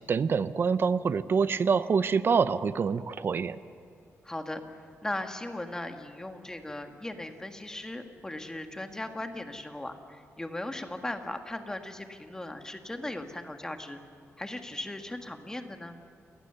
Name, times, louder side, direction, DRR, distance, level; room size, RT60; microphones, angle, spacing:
voice 1, 0.1-3.6, right 5 dB, 45° right, 14 dB, 0.7 m, -26 dB
voice 2, 4.2-14.0 14.4-16.0, left 1 dB, 10° left, 6 dB, 1.5 m, -38 dB
28.5 x 19.5 x 6.8 m, 2.5 s
wide cardioid pair, 145°, 5 cm